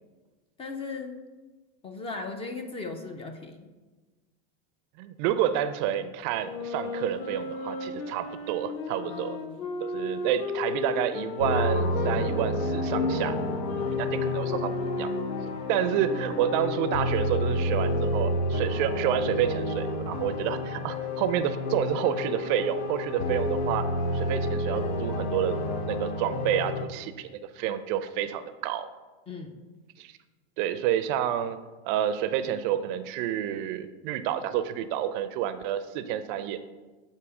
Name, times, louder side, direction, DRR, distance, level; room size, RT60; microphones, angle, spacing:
voice 1, 0.6-1.2 1.8-3.7 9.1-9.6 29.3-29.6, left 3 dB, 20° left, 6 dB, 0.4 m, -37 dB
voice 2, 5.0-9.4 9.8-13.4 13.7-15.1 15.7-23.9 24.1-25.6 25.9-28.9 30.0-30.1 30.6-31.6 31.8-36.6, right 10 dB, 50° right, 11 dB, 0.4 m, -29 dB
sound 1, 6.4-12.2 12.9-18.4, left 3 dB, 40° left, 1.0 m, -35 dB
sound 2, 11.4-26.9, left 1 dB, 80° left, 0.8 m, -29 dB
8.1 x 2.8 x 4.8 m, 1.2 s
supercardioid pair, 130°, 31 cm